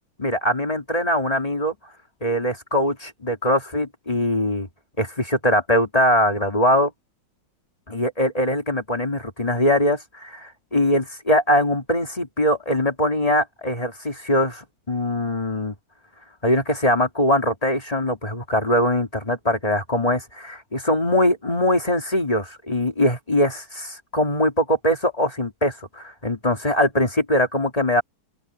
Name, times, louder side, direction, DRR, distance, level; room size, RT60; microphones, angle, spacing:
voice 1, 0.2-1.7 2.2-4.7 5.0-6.9 7.9-15.7 16.4-28.0, left 1 dB, 20° left, 2.7 m, -22 dB
open air
omnidirectional pair, 2.2 m